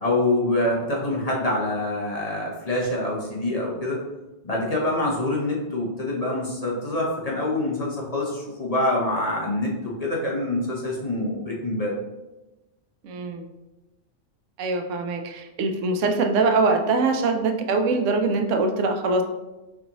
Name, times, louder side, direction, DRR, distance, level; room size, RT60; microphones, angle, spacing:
voice 1, 0.0-4.0 4.4-11.9, left 1 dB, 35° left, -3 dB, 0.8 m, -25 dB
voice 2, 13.0-13.5 14.6-19.2, right 3 dB, 85° right, 5 dB, 0.9 m, -23 dB
4.5 x 4.0 x 2.9 m, 1.0 s
omnidirectional pair, 1.2 m